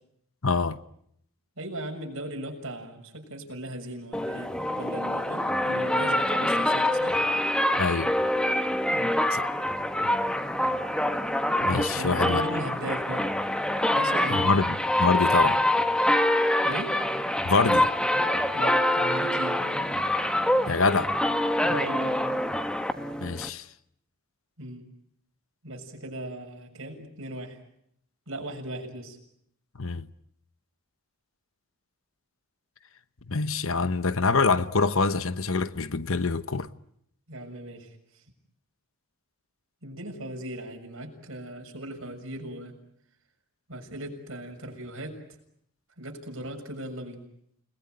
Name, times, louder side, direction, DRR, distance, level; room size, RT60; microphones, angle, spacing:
voice 1, 0.4-0.8 7.8-8.1 9.3-9.5 11.6-12.4 14.3-15.6 17.4-17.9 20.7-21.1 23.2-23.6 29.8-30.1 33.3-36.7, left 4 dB, 65° left, 1.0 m, -25 dB
voice 2, 1.6-7.2 8.9-9.2 11.9-13.3 13.9-14.6 16.6-17.0 18.5-19.6 21.6-22.3 24.6-24.9 25.6-27.6 28.3-29.2 37.3-38.2 39.8-42.7 43.7-45.2 46.0-47.3, right 1 dB, 65° right, 6.7 m, -38 dB
sound 1, 4.1-23.5, left 1 dB, 5° left, 1.2 m, -25 dB
30.0 x 20.0 x 9.4 m
head